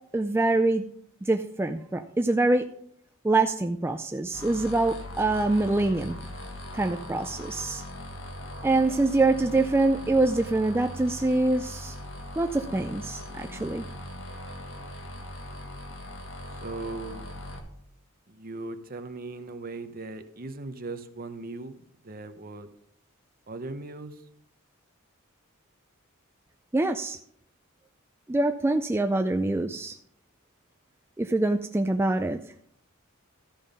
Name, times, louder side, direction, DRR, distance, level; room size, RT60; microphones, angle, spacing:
voice 1, 0.1-0.8 1.2-2.6 3.2-6.2 6.7-7.8 8.6-12.0 12.4-13.8 26.7-27.2 28.3-30.0 31.2-32.4, right 2 dB, 10° right, 5 dB, 0.3 m, -25 dB
sound 1, 4.3-17.6, left 1 dB, 65° left, 1.6 m, -40 dB
voice 2, 16.6-17.3 18.3-21.8 22.0-22.7 23.5-24.2, right 3 dB, 45° right, 9 dB, 0.9 m, -38 dB
13.0 x 5.4 x 5.3 m, 0.66 s
head